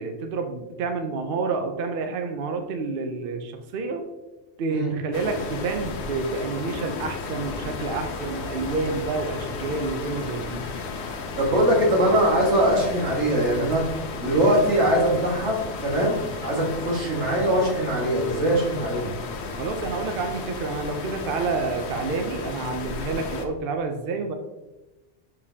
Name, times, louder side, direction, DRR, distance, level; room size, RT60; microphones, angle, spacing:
voice 1, 0.0-4.0 4.6-10.6 19.6-24.3, right 4 dB, 60° right, 5 dB, 0.8 m, -29 dB
sound 1, 5.1-23.5, left 4 dB, 70° left, 1.0 m, -34 dB
voice 2, 11.4-13.8 14.2-19.1, right 1 dB, 90° right, -3 dB, 2.0 m, -22 dB
6.7 x 5.2 x 2.7 m, 1.0 s
omnidirectional pair, 1.2 m